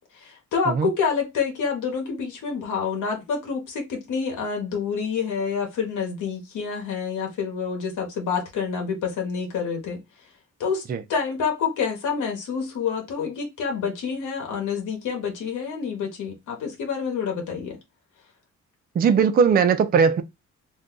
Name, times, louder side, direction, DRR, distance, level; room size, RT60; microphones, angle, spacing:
voice 1, 0.1-10.0 10.6-10.8 11.1-17.8, left 6 dB, 80° left, 1.0 m, -28 dB
voice 2, 18.9-20.2, right 6 dB, 30° right, 0.4 m, -19 dB
2.6 x 2.2 x 3.7 m
cardioid pair, 95°, 30 cm